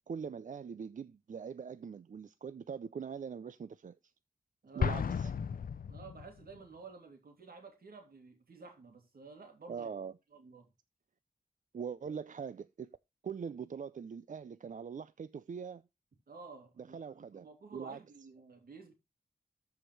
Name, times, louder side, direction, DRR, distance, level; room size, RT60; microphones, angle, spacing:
voice 1, 0.1-4.0 4.7-5.3 9.7-10.1 11.7-12.9 13.2-15.8 16.8-17.5 17.7-18.0, right 6 dB, 55° right, 0.5 m, -42 dB
voice 2, 4.6-5.3 5.9-9.9 10.3-10.7 16.3-18.9, right 4 dB, 80° right, 2.7 m, -52 dB
Explosion, 4.8-6.6, left 7 dB, 70° left, 0.5 m, -34 dB
13.5 x 4.9 x 3.2 m
cardioid pair, 60°, 15 cm